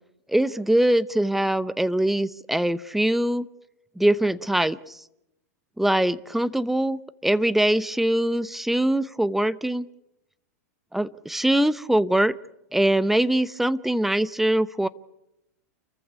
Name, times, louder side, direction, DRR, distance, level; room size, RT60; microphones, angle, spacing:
voice 1, 0.3-3.5 4.0-5.0 5.8-9.9 10.9-12.3 12.7-14.9, right 1 dB, 5° right, 16 dB, 0.8 m, -22 dB
29.0 x 15.0 x 9.7 m, 0.85 s
hypercardioid pair, 110°, 9 cm